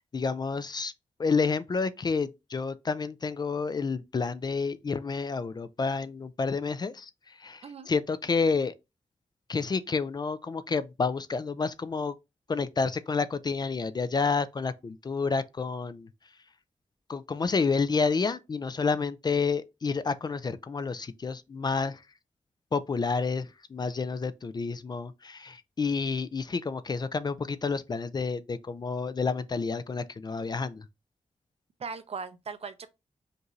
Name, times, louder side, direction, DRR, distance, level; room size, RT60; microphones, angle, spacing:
voice 1, 0.1-0.9 1.2-8.7 9.5-12.1 12.5-16.1 17.1-22.0 22.7-30.9, left 4 dB, 35° left, 0.3 m, -29 dB
voice 2, 31.8-32.9, right 5 dB, 55° right, 0.5 m, -38 dB
5.2 x 2.5 x 3.0 m
wide cardioid pair, 115°, 12 cm